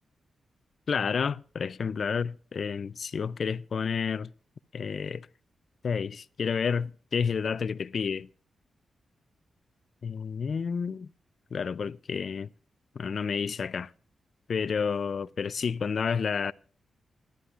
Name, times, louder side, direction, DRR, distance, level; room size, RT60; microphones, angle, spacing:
voice 1, 0.9-4.3 4.7-5.3 5.8-8.3 10.0-11.1 11.5-12.5 13.0-13.9 14.5-16.5, left 6 dB, 60° left, 0.4 m, -30 dB
19.0 x 11.5 x 2.5 m
cardioid pair, 80°, 0 cm